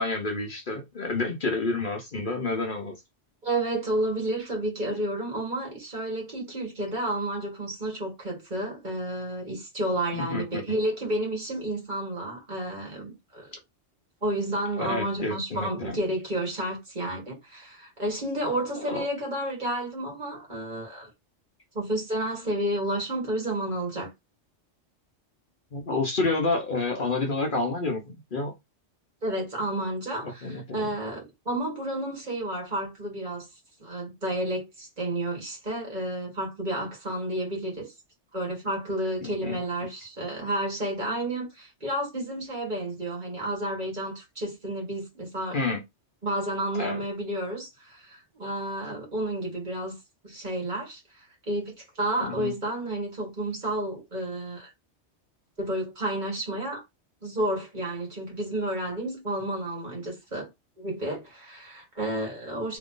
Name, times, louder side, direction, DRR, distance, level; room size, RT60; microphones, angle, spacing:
voice 1, 0.0-2.9 10.1-10.6 14.8-16.0 18.8-19.0 25.7-28.5 30.2-30.9 39.2-39.6 45.5-45.8 46.7-47.0 52.2-52.5, left 3 dB, 50° left, 1.0 m, -29 dB
voice 2, 3.4-13.5 14.2-21.1 21.7-24.1 29.2-33.5 33.8-37.9 38.3-45.6 46.2-50.0 50.2-54.7 55.6-56.8 57.2-60.5 60.8-62.8, right 1 dB, 40° right, 2.0 m, -31 dB
3.6 x 3.0 x 3.8 m
omnidirectional pair, 1.2 m